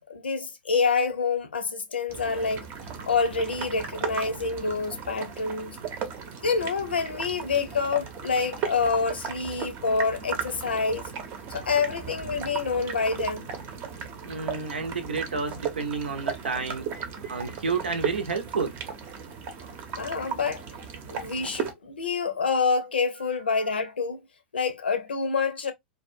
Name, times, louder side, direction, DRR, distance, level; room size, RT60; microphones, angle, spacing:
voice 1, 0.0-2.7 3.1-5.8 6.4-11.0 11.5-13.5 20.0-20.6 21.1-24.2 24.5-25.7, left 5 dB, 85° left, 0.7 m, -27 dB
sound 1, 2.1-21.7, right 6 dB, 40° right, 0.7 m, -36 dB
voice 2, 14.2-18.8, right 4 dB, 85° right, 0.7 m, -30 dB
2.4 x 2.2 x 2.5 m
hypercardioid pair, 105°, 5 cm